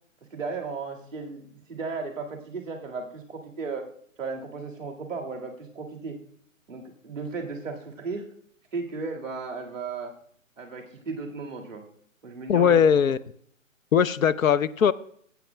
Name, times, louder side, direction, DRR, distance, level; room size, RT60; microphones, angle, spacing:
voice 1, 0.3-3.9 4.2-6.2 6.7-8.3 8.7-10.2 10.6-11.9 12.2-12.9, right 4 dB, 5° right, 2 dB, 1.1 m, -35 dB
voice 2, 12.5-13.2 13.9-14.9, left 7 dB, 80° left, 16 dB, 0.7 m, -20 dB
16.5 x 8.3 x 2.2 m, 0.64 s
hypercardioid pair, 175°, 40 cm